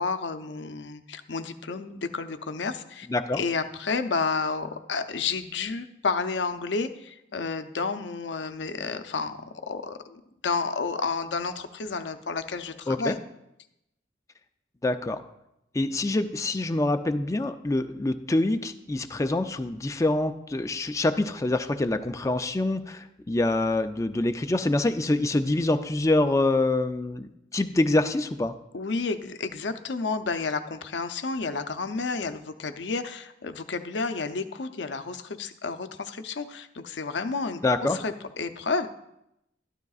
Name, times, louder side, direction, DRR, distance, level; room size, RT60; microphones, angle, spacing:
voice 1, 0.0-3.1 3.3-13.2 28.7-37.6 37.9-38.9, left 4 dB, 75° left, 9 dB, 0.6 m, -31 dB
voice 2, 3.1-3.4 12.9-13.2 14.8-15.2 15.7-28.5 37.6-38.0, left 2 dB, 15° left, 8 dB, 0.4 m, -25 dB
12.5 x 12.0 x 2.4 m, 0.84 s
head